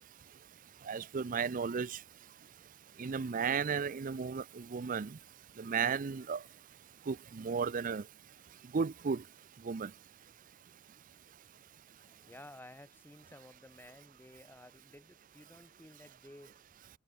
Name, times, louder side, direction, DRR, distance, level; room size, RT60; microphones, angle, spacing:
voice 1, 0.9-2.0 3.0-5.2 5.6-6.4 7.1-8.0 8.7-9.2 9.6-9.9, right 5 dB, 45° right, 0.5 m, -34 dB
voice 2, 12.0-16.6, left 1 dB, 10° left, 2.7 m, -55 dB
head